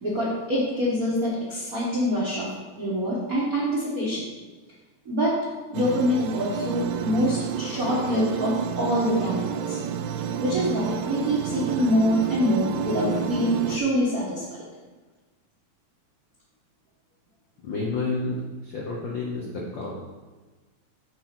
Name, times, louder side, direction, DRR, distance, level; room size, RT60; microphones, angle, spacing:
voice 1, 0.0-4.3 5.0-5.4 5.7-9.8 10.4-14.4, equal, 60° right, -7 dB, 0.9 m, -25 dB
sound 1, 5.7-13.8, right 8 dB, 80° right, 1.6 m, -30 dB
voice 2, 17.6-19.9, left 3 dB, 85° left, -3 dB, 1.0 m, -30 dB
6.7 x 4.4 x 5.8 m, 1.3 s
omnidirectional pair, 3.5 m